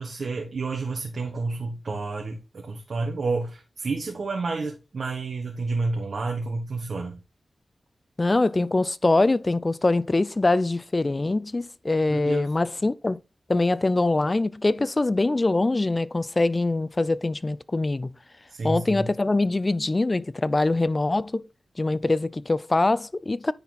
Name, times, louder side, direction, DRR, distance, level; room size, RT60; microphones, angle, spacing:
voice 1, 0.0-7.2 12.1-12.5 18.5-19.1, right 3 dB, 70° right, 1.5 m, -30 dB
voice 2, 8.2-13.2 13.5-18.2 18.6-21.4 21.8-23.5, left 2 dB, 35° left, 0.5 m, -23 dB
9.9 x 4.3 x 4.1 m
cardioid pair, 50°, 0 cm